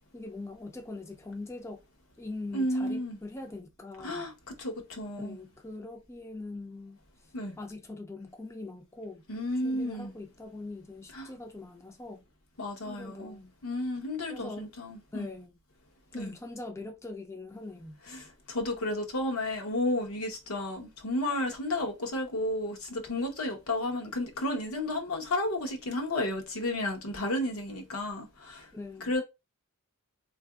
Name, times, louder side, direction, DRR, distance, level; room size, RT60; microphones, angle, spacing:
voice 1, 0.1-1.8 2.2-4.3 5.2-7.0 7.6-9.2 9.6-12.3 12.8-13.6 14.3-14.7 15.1-15.5 16.1-18.0 28.7-29.1, left 2 dB, 15° left, 0.3 m, -42 dB
voice 2, 2.5-3.2 4.0-5.4 7.3-7.6 9.3-10.1 11.1-11.3 12.6-15.3 16.1-16.4 18.1-28.7 29.0-29.2, left 1 dB, 80° left, 0.9 m, -32 dB
3.6 x 2.5 x 2.3 m
head